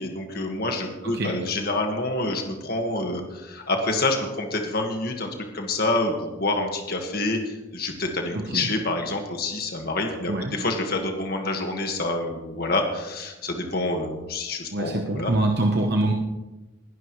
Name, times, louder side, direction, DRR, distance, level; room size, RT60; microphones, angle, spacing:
voice 1, 0.0-5.3 5.5-15.3, left 2 dB, 45° left, 3 dB, 1.8 m, -27 dB
voice 2, 8.3-8.7 10.3-10.5 14.7-16.1, right 2 dB, 50° right, 2 dB, 1.0 m, -24 dB
20.5 x 11.5 x 3.2 m, 1.1 s
head